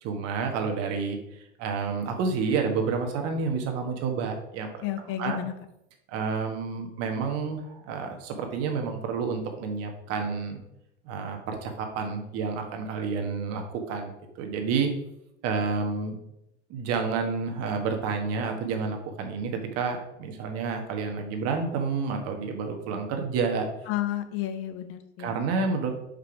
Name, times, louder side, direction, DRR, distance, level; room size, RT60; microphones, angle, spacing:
voice 1, 0.0-1.2 1.6-4.7 5.2-5.4 6.1-10.6 11.0-14.9 15.4-16.2 16.7-23.7 25.2-25.9, right 5 dB, 45° right, 4 dB, 1.5 m, -29 dB
voice 2, 4.8-5.5 23.9-25.3, left 12 dB, 40° left, 9 dB, 0.8 m, -31 dB
5.4 x 5.2 x 4.9 m, 0.83 s
figure-of-eight pair, 80°, 35 cm